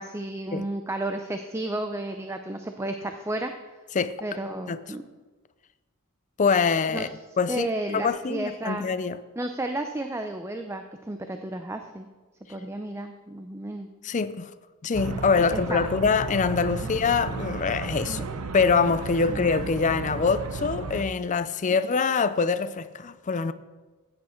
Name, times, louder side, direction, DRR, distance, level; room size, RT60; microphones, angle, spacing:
voice 1, 0.0-3.5 4.2-5.0 6.9-7.1 7.5-8.9 9.4-12.1 12.5-13.9 15.4-16.1 16.8-16.9 18.1-18.2 19.3-19.4, right 1 dB, 10° right, 0.5 m, -32 dB
voice 2, 6.4-7.1 7.4-7.7 7.9-9.2 14.0-14.5 14.8-18.2 18.5-23.5, left 5 dB, 35° left, 0.4 m, -24 dB
sound 1, 14.9-21.0, right 4 dB, 75° right, 0.8 m, -34 dB
14.5 x 8.7 x 4.4 m
head